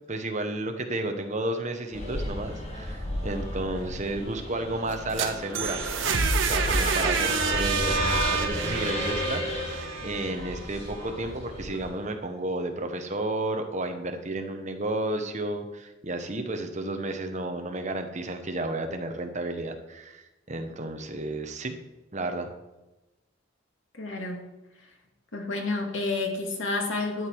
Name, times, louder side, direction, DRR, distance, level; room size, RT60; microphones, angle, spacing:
voice 1, 0.1-5.8 6.4-21.7 22.1-22.5, right 2 dB, 40° right, 5 dB, 1.2 m, -32 dB
sound 1, 1.9-11.9, left 1 dB, 35° left, 2.4 m, -34 dB
sound 2, 4.9-10.8, right 4 dB, 80° right, 1.2 m, -28 dB
voice 2, 23.9-24.4 25.3-27.3, left 3 dB, 85° left, 2 dB, 2.2 m, -30 dB
12.5 x 8.1 x 4.7 m, 1.0 s
head